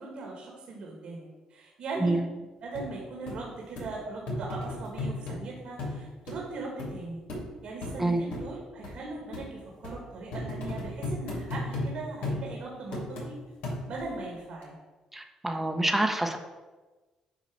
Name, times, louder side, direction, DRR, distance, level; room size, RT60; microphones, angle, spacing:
voice 1, 0.0-2.2 2.6-7.2 7.6-13.4 13.9-14.8, right 3 dB, 70° right, -1 dB, 1.7 m, -39 dB
sound 1, 2.8-2.9 3.3-3.4 3.8-3.9 4.3-5.4 5.8-6.0 6.3-6.4 6.8-6.9 7.3-7.4 7.8-8.0 8.3-8.4 8.8-8.9 9.3-9.5 9.8-10.0 10.3-11.9 12.2-12.4 12.9-13.3 13.6-14.1 14.6-14.7, left 2 dB, 80° left, 2.1 m, -34 dB
voice 2, 15.1-16.4, right 2 dB, 10° right, 5 dB, 0.9 m, -27 dB
8.4 x 2.9 x 6.0 m, 1.2 s
cardioid pair, 80°, 2 cm